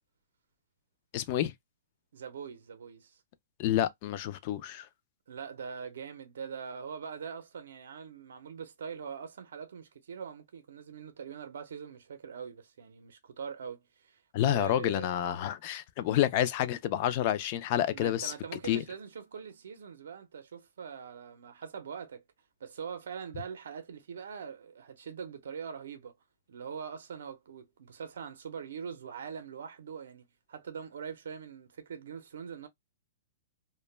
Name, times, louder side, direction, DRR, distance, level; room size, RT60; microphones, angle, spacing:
voice 1, 1.1-1.5 3.6-4.9 14.3-18.3 18.7-18.8, left 12 dB, 40° left, 0.3 m, -29 dB
voice 2, 2.1-3.2 5.3-15.1 17.9-22.2 22.6-26.1 26.5-32.7, right 6 dB, 85° right, 0.5 m, -43 dB
2.1 x 2.1 x 3.1 m
hypercardioid pair, 160°, 0 cm